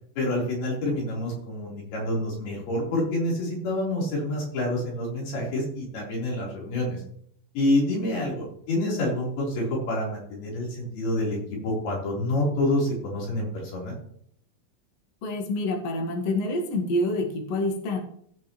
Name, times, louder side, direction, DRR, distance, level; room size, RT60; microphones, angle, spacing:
voice 1, 0.2-7.0 7.5-11.4 11.6-14.0, left 1 dB, 90° left, -4 dB, 5.9 m, -27 dB
voice 2, 15.2-18.0, left 1 dB, 50° left, 2 dB, 2.5 m, -27 dB
16.0 x 8.3 x 3.1 m, 0.65 s
omnidirectional pair, 4.3 m